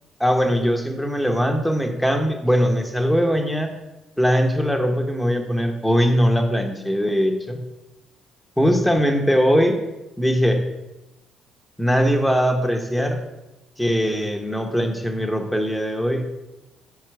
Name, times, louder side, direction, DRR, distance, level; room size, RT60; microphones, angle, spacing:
voice 1, 0.2-3.7 4.2-7.6 8.6-9.8 10.2-10.7 11.8-13.2 13.8-16.2, equal, ahead, 4 dB, 1.1 m, -20 dB
5.6 x 4.8 x 4.8 m, 0.98 s
hypercardioid pair, 50°, 0 cm